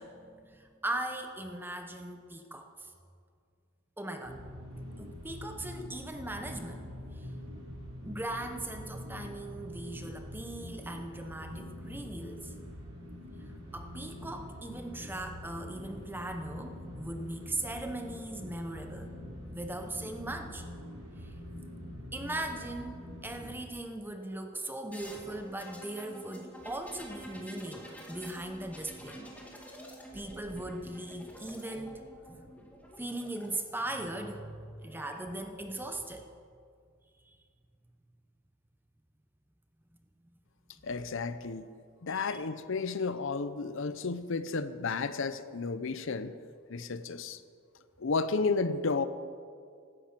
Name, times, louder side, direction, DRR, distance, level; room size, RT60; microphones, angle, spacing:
voice 1, 0.0-2.9 4.0-4.4 5.0-7.3 8.0-12.5 13.4-19.1 19.5-20.6 21.2-21.3 22.1-29.2 30.1-32.0 33.0-36.3 37.2-37.4 42.1-42.4, right 1 dB, 10° right, 5 dB, 0.9 m, -39 dB
sound 1, 4.2-23.6, left 1 dB, 75° right, 4.8 m, -45 dB
sound 2, 24.9-33.5 34.6-35.2, equal, 5° left, 2.4 m, -49 dB
voice 2, 40.8-41.7 42.0-46.3 46.7-47.4 48.0-49.0, left 4 dB, 65° left, 13 dB, 0.7 m, -32 dB
16.5 x 13.0 x 6.0 m, 2.2 s
head